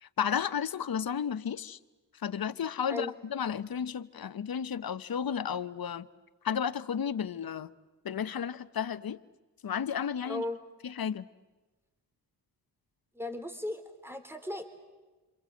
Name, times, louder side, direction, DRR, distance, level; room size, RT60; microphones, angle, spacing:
voice 1, 0.0-1.8 2.2-6.1 6.4-7.7 8.0-9.2 9.6-10.4 10.8-11.2, left 8 dB, 55° left, 1.1 m, -33 dB
voice 2, 10.2-10.6 13.1-14.6, left 1 dB, 5° right, 4.0 m, -36 dB
27.5 x 26.5 x 7.9 m
supercardioid pair, 40°, 44 cm